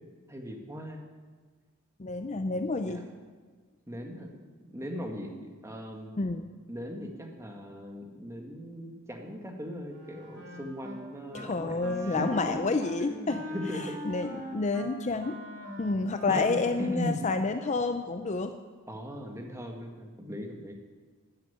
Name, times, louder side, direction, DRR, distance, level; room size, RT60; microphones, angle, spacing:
voice 1, 0.3-1.0 2.8-3.0 3.9-6.1 6.7-12.5 13.1-13.9 16.3-17.2 18.9-20.7, equal, 15° right, 2 dB, 1.6 m, -38 dB
voice 2, 2.0-3.0 6.2-6.4 11.3-13.5 14.0-15.4 15.8-18.5, left 3 dB, 35° left, 8 dB, 0.5 m, -29 dB
Wind instrument woodwind instrument, 9.9-11.0 11.3-11.5 11.8-17.1, left 1 dB, 55° right, 2.7 m, -42 dB
12.5 x 7.5 x 9.1 m, 1.5 s
head